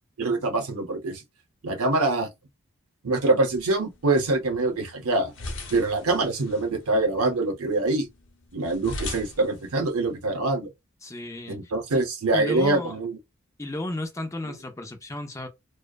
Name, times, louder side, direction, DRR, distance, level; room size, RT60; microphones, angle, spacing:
voice 1, 0.2-1.2 1.6-2.3 3.0-5.3 5.7-8.1 8.5-10.7 11.5-13.2, right 2 dB, 90° right, 0.7 m, -24 dB
sound 1, 3.3-10.3, left 2 dB, 60° left, 0.8 m, -41 dB
voice 2, 11.0-11.7 12.3-12.9 13.6-15.5, left 2 dB, 15° left, 0.4 m, -33 dB
2.6 x 2.2 x 2.2 m
head